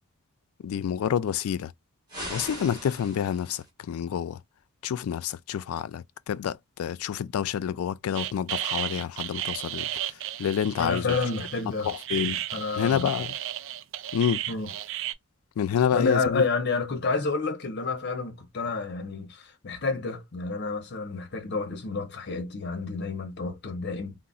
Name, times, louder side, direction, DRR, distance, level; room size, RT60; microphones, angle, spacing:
voice 1, 0.6-1.7 2.3-4.4 4.8-9.9 10.4-11.2 11.8-12.4 12.8-13.3 14.1-14.4 15.6-16.4, left 8 dB, 80° left, 0.3 m, -28 dB
sound 1, 2.1-3.7, equal, 20° right, 1.2 m, -39 dB
sound 2, 8.1-15.1, right 13 dB, 60° right, 0.3 m, -34 dB
voice 2, 10.8-13.1 14.5-14.7 15.9-24.2, left 4 dB, 50° left, 0.7 m, -29 dB
3.8 x 2.0 x 2.3 m
head